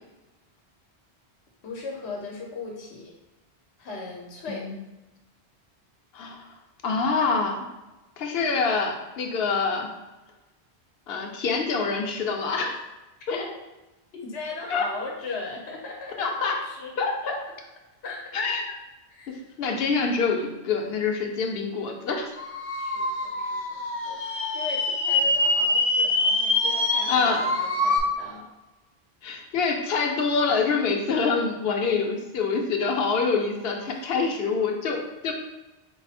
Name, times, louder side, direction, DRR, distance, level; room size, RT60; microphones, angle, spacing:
voice 1, 1.6-3.1 3.8-4.7 13.3-13.5 14.1-16.3 16.6-16.9 17.2-17.4 18.0-18.3 19.1-19.4 22.8-28.5 33.9-34.3, left 3 dB, 85° left, -1 dB, 1.0 m, -38 dB
voice 2, 6.8-7.6 8.2-9.9 11.1-12.8 13.3-13.4 14.7-14.8 16.2-16.6 17.0-17.4 18.3-18.6 19.6-22.3 27.1-27.4 29.2-35.3, left 4 dB, 70° left, 2 dB, 0.9 m, -25 dB
sound 1, 22.4-28.0, left 2 dB, 50° left, 0.4 m, -25 dB
4.7 x 2.0 x 4.1 m, 1.1 s
omnidirectional pair, 1.1 m